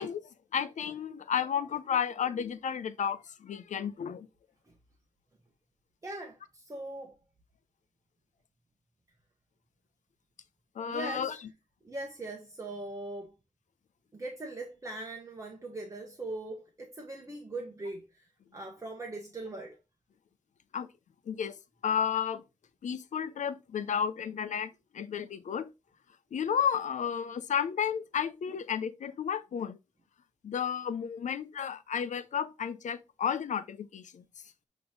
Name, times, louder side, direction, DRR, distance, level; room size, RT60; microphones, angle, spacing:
voice 1, 0.0-4.3 10.8-11.4 20.7-20.9 21.3-21.6 21.8-22.4 22.8-25.7 26.3-29.8 30.4-34.2, left 8 dB, 75° left, 0.7 m, -32 dB
voice 2, 6.0-7.2 10.9-11.4 11.8-13.3 14.1-19.8, right 2 dB, 25° right, 1.2 m, -41 dB
8.0 x 3.1 x 5.0 m
wide cardioid pair, 140°, 13 cm